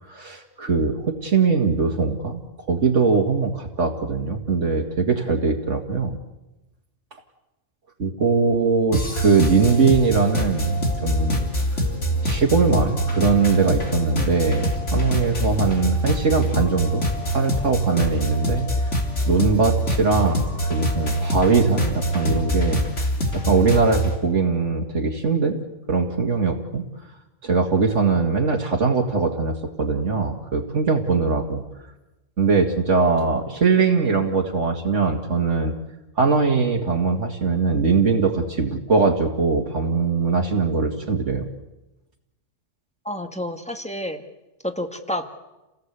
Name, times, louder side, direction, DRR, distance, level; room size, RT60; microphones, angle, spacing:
voice 1, 0.1-2.4 2.7-6.2 8.0-11.5 12.2-18.7 19.3-22.8 23.3-25.6 25.9-26.8 27.4-31.6 32.4-35.7 36.2-41.5, right 4 dB, 75° right, 2 dB, 2.4 m, -21 dB
sound 1, 8.9-24.2, equal, 70° left, 3.9 m, -24 dB
voice 2, 43.1-44.3 44.6-45.2, left 1 dB, 5° left, 6 dB, 1.9 m, -29 dB
30.0 x 18.0 x 8.3 m, 1.0 s
omnidirectional pair, 1.3 m